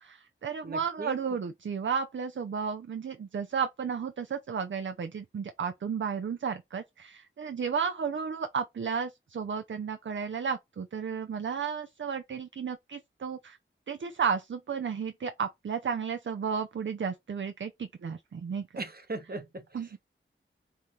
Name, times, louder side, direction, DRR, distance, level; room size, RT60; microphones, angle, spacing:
voice 1, 0.0-13.6 13.9-18.8 19.7-20.0, right 6 dB, 65° right, 0.5 m, -33 dB
voice 2, 0.6-1.2 18.8-19.6, right 2 dB, 45° right, 1.0 m, -38 dB
5.4 x 2.7 x 3.0 m
wide cardioid pair, 60°, 21 cm